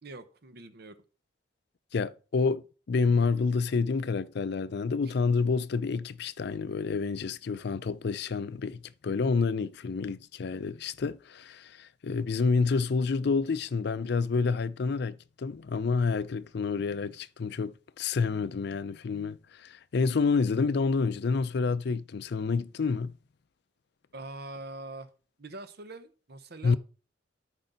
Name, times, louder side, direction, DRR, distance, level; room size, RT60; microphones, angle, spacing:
voice 1, 0.0-1.0 24.1-25.1 25.4-26.8, right 2 dB, 55° right, 1.0 m, -43 dB
voice 2, 1.9-23.1 26.6-26.8, left 4 dB, 60° left, 0.4 m, -28 dB
13.0 x 5.3 x 4.0 m
head